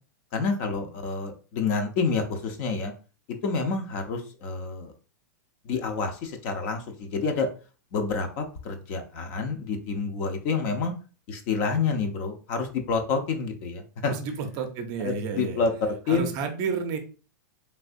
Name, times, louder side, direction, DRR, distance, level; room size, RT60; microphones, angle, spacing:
voice 1, 0.3-2.9 3.3-4.9 5.6-7.5 7.9-10.9 11.3-14.1 15.0-15.7 16.1-16.3, left 4 dB, 45° left, 5 dB, 0.6 m, -28 dB
voice 2, 14.0-15.6 16.1-17.0, right 6 dB, 35° right, 6 dB, 0.5 m, -31 dB
3.3 x 2.7 x 2.5 m, 0.36 s
hypercardioid pair, 140°, 10 cm